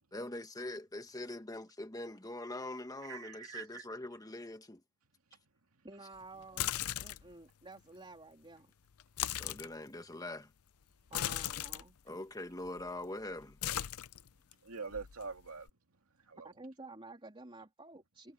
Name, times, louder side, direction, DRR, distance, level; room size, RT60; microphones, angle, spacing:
voice 1, 0.1-4.8 9.4-10.5 12.0-13.6, left 2 dB, 15° left, 1.5 m, -43 dB
voice 2, 3.0-3.8 14.6-15.7 16.3-16.5, right 5 dB, 70° right, 2.5 m, -44 dB
voice 3, 5.8-6.7 7.0-8.7 11.1-12.0 16.4-18.3, right 2 dB, 25° right, 3.4 m, -51 dB
sound 1, 6.4-7.3 9.0-9.7 11.1-11.8 12.6-13.1 13.3-14.5 14.9-15.7, left 12 dB, 80° left, 0.6 m, -37 dB
head